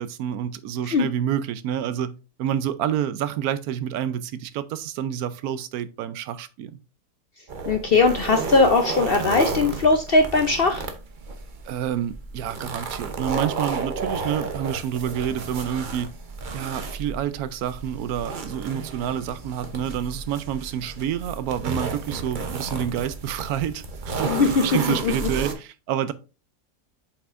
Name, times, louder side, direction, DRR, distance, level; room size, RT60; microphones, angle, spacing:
voice 1, 0.0-2.1 2.4-6.8 11.7-16.1 16.5-26.1, right 10 dB, 75° right, 1.0 m, -28 dB
sound 1, 7.5-25.5, right 4 dB, 45° right, 0.7 m, -32 dB
voice 2, 7.7-10.8 24.2-24.6 25.0-25.1, left 3 dB, 55° left, 0.6 m, -19 dB
7.1 x 5.4 x 2.5 m
omnidirectional pair, 1.6 m